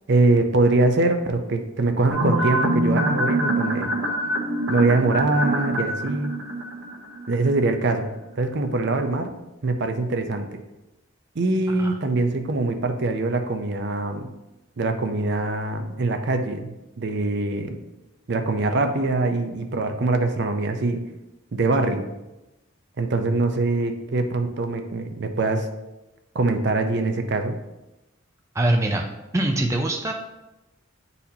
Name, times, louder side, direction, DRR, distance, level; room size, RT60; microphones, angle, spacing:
voice 1, 0.1-3.9 4.7-6.4 7.3-8.1 8.4-9.3 9.6-10.5 11.4-14.3 14.8-17.7 18.3-21.0 21.5-22.0 23.0-25.7 26.3-27.6, right 2 dB, 55° right, 6 dB, 0.6 m, -23 dB
sound 1, 2.1-7.5 7.7-7.8, right 1 dB, 75° right, 1.1 m, -25 dB
voice 2, 28.5-29.0 29.3-30.1, right 1 dB, 15° right, 2 dB, 0.4 m, -22 dB
9.9 x 4.1 x 2.8 m, 0.99 s
head